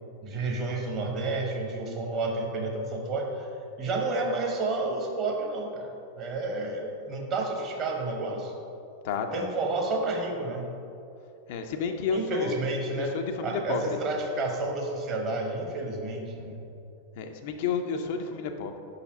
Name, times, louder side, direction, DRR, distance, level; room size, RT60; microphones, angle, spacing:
voice 1, 0.2-3.5 3.8-8.5 9.3-10.7 12.1-13.2 13.4-16.6, right 2 dB, 35° right, 1 dB, 1.0 m, -30 dB
voice 2, 9.0-9.5 11.5-12.5 12.9-13.8 17.2-18.8, left 5 dB, 50° left, 5 dB, 0.4 m, -31 dB
5.5 x 4.2 x 4.9 m, 2.7 s
figure-of-eight pair, 90°, 0 cm